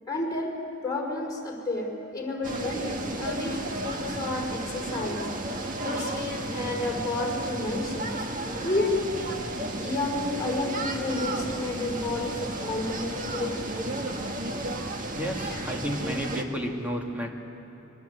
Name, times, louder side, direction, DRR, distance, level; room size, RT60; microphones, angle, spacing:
voice 1, 0.1-5.3 5.8-8.1 8.6-9.1 9.7-13.6 15.5-15.6, left 2 dB, 20° left, -1 dB, 4.8 m, -31 dB
sound 1, 2.4-16.4, right 1 dB, 45° right, 1.7 m, -33 dB
voice 2, 15.1-17.3, equal, 10° right, 1 dB, 2.3 m, -31 dB
26.5 x 23.5 x 8.1 m, 2.9 s
head